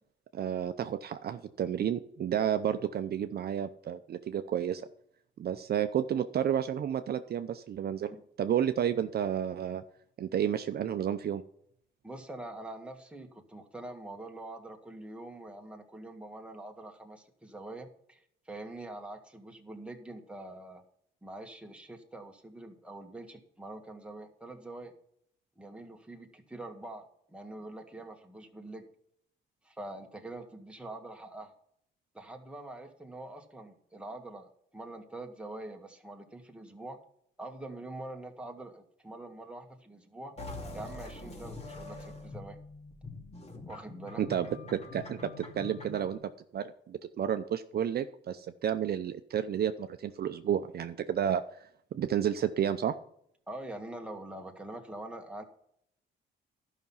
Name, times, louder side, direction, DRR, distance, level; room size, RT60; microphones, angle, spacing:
voice 1, 0.3-4.8 5.4-9.8 10.2-11.4 44.2-51.4 51.9-52.9, right 9 dB, 50° right, 9 dB, 0.6 m, -31 dB
voice 2, 12.0-20.8 21.2-24.9 25.6-28.9 29.6-31.5 32.1-37.0 37.4-40.3 40.7-42.6 43.7-44.2 53.5-55.4, right 2 dB, 5° right, 2 dB, 1.7 m, -44 dB
sound 1, 40.4-46.2, left 2 dB, 30° left, 2.5 m, -44 dB
12.0 x 5.9 x 5.5 m, 0.70 s
cardioid pair, 90°, 20 cm